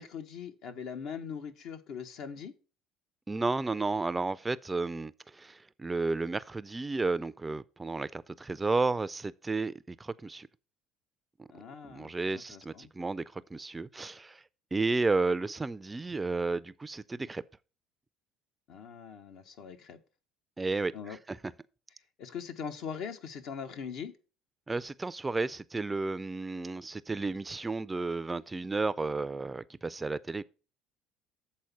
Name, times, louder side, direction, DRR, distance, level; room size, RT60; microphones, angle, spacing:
voice 1, 0.0-2.5 11.5-12.9 18.7-20.0 20.9-21.2 22.2-24.1, left 7 dB, 65° left, 1.1 m, -41 dB
voice 2, 3.3-10.5 11.4-11.5 11.8-14.4 14.7-17.4 20.6-21.4 24.7-30.4, right 3 dB, 20° right, 0.4 m, -32 dB
7.7 x 4.2 x 6.9 m
hypercardioid pair, 70°, 0 cm